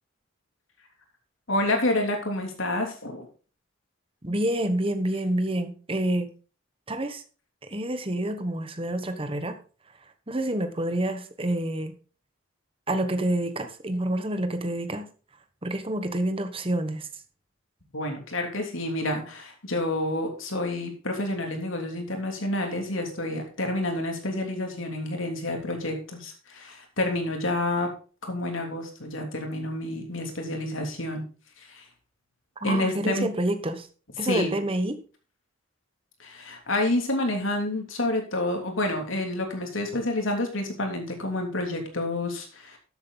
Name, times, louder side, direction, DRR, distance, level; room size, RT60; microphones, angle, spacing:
voice 1, 1.5-3.3 17.9-27.9 28.2-31.2 31.6-31.8 32.6-33.3 34.2-34.5 36.2-42.8, left 1 dB, 80° left, 3 dB, 3.1 m, -29 dB
voice 2, 4.2-6.3 6.9-7.2 7.6-9.6 10.3-11.9 12.9-15.1 15.6-17.1 32.6-33.9 34.2-35.0, right 1 dB, 25° right, 9 dB, 1.2 m, -28 dB
13.0 x 8.1 x 4.0 m, 0.37 s
head